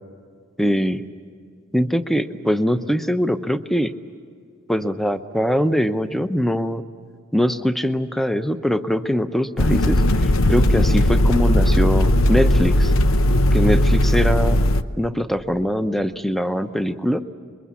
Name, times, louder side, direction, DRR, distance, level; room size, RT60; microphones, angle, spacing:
voice 1, 0.6-1.0 1.7-3.9 4.7-6.8 7.3-12.9 13.5-14.6 15.0-17.2, equal, ahead, 10 dB, 0.7 m, -22 dB
sound 1, 9.6-14.8, left 1 dB, 80° left, 0.9 m, -17 dB
27.0 x 22.5 x 8.4 m, 2.2 s
head